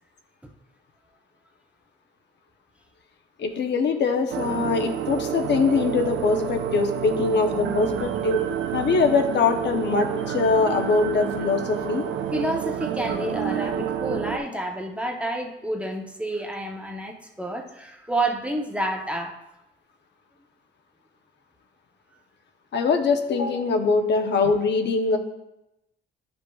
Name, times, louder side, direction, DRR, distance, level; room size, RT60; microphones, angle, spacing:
voice 1, 3.4-8.4 8.7-12.1 22.7-25.2, left 4 dB, 60° left, 5 dB, 0.8 m, -22 dB
sound 1, 4.3-14.4, right 9 dB, 75° right, 0.6 m, -29 dB
voice 2, 12.3-19.3, right 1 dB, 5° right, 2 dB, 0.9 m, -29 dB
9.8 x 5.1 x 2.3 m, 0.91 s
cardioid pair, 90°, 20 cm